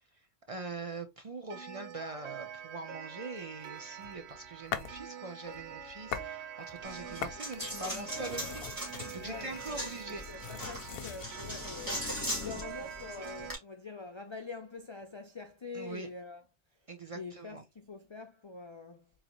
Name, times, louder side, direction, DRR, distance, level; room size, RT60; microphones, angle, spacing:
voice 1, 0.5-10.2 15.7-16.1 16.9-17.6, right 3 dB, 40° right, 0.6 m, -43 dB
Clock, 1.5-13.6, right 8 dB, 70° right, 0.9 m, -46 dB
sound 1, 3.6-5.0 5.4-6.3 6.7-11.3, left 9 dB, 65° left, 0.7 m, -43 dB
Coin (dropping), 6.9-13.6, equal, 15° right, 2.0 m, -40 dB
voice 2, 9.2-9.9 10.3-16.4 17.1-19.1, left 4 dB, 45° left, 0.3 m, -45 dB
3.9 x 3.0 x 3.0 m
omnidirectional pair, 1.2 m